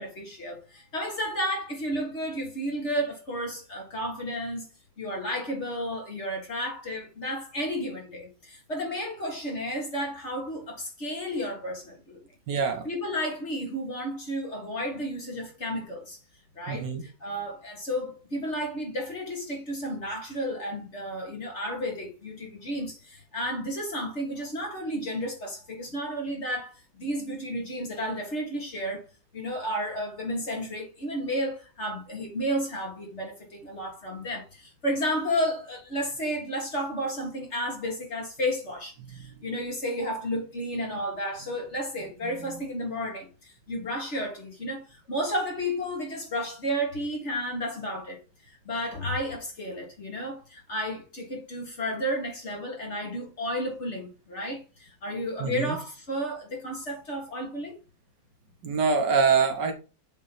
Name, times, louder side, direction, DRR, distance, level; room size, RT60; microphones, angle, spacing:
voice 1, 0.0-4.7 5.0-12.2 12.8-16.2 16.6-29.0 29.3-57.8, equal, 40° left, 1.7 m, -32 dB
voice 2, 12.5-12.9 16.7-17.0 55.4-55.8 58.6-59.7, right 5 dB, 65° right, 1.5 m, -24 dB
7.9 x 3.1 x 4.1 m
omnidirectional pair, 2.1 m